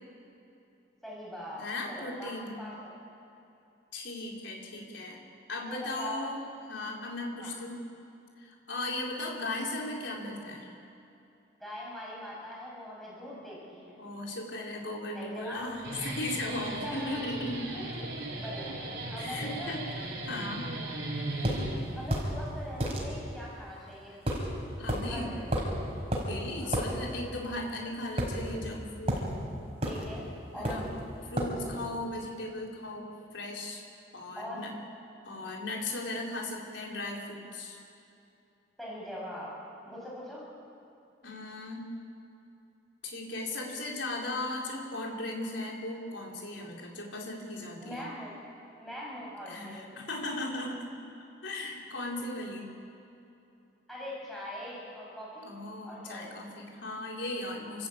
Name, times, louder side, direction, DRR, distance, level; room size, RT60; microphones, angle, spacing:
voice 1, 1.0-2.9 5.6-6.4 7.4-7.5 11.6-14.0 15.1-15.7 16.7-17.2 17.7-17.9 18.3-18.8 19.1-19.8 21.9-24.2 25.1-25.5 26.6-26.7 29.8-30.9 34.4-34.6 38.8-39.5 39.9-40.5 47.8-48.3 48.8-49.9 53.9-55.5 55.8-56.3, equal, ahead, -5 dB, 7.0 m, -42 dB
voice 2, 1.6-2.6 3.9-5.2 5.5-6.4 6.7-7.8 8.4-10.7 14.0-17.7 18.0-18.1 19.2-20.7 24.8-25.3 26.2-29.2 30.5-30.9 31.3-33.8 34.1-34.7 35.2-37.8 41.2-41.9 43.0-48.1 49.5-50.9 51.4-52.7 55.4-57.9, left 2 dB, 75° left, -1 dB, 4.2 m, -37 dB
Guitar, 15.6-22.2, right 2 dB, 65° right, 4.5 m, -37 dB
sound 1, 21.4-21.6 22.1-22.3 22.8-23.0 24.3-24.5 24.9-25.0 25.5-25.8 26.1-26.3 26.7-26.9 28.2-28.7 29.1-29.3 29.8-30.1 30.6-30.9 31.4-31.6, equal, 30° right, 4.9 m, -30 dB
29.5 x 14.0 x 8.7 m, 2.8 s
head